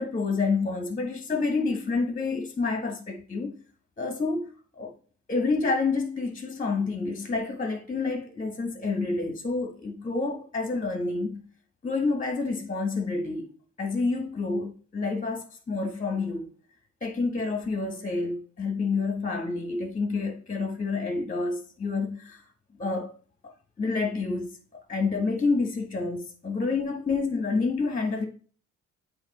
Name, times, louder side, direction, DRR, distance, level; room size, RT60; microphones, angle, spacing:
voice 1, 0.0-3.5 4.0-4.9 5.3-11.4 11.8-13.5 13.8-16.5 17.0-22.4 22.8-23.2 23.4-24.5 24.7-28.3, left 3 dB, 25° left, 1.5 m, -28 dB
7.9 x 3.6 x 4.1 m
cardioid pair, 90°, 30 cm